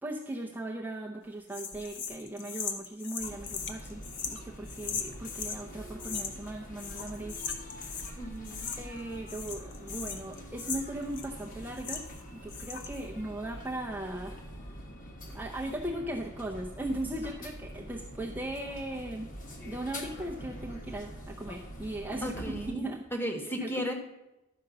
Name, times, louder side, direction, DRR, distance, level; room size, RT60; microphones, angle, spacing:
voice 1, 0.0-7.5 7.7-8.3 8.8-12.1 12.3-14.4 15.3-19.3 19.6-22.4 22.7-23.2 23.6-23.7, right 1 dB, 10° right, -3 dB, 0.7 m, -38 dB
sound 1, 1.5-5.6 6.0-6.5 6.8-8.2 8.4-9.0 9.3-12.2 12.5-13.0, left 6 dB, 55° left, 1.1 m, -39 dB
sound 2, 3.2-22.7, equal, 40° left, 1.3 m, -45 dB
voice 2, 8.2-8.7 22.2-23.9, equal, 10° left, 4 dB, 1.2 m, -35 dB
11.5 x 5.2 x 6.7 m, 0.97 s
head